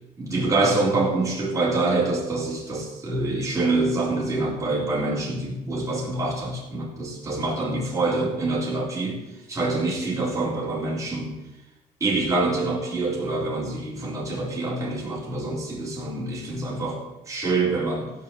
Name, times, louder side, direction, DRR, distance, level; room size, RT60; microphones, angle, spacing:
voice 1, 0.2-9.2 9.5-11.4 12.0-17.0 17.3-18.1, right 2 dB, 20° right, -4 dB, 4.0 m, -26 dB
16.0 x 5.4 x 7.6 m, 1.0 s
cardioid pair, 110°, 17 cm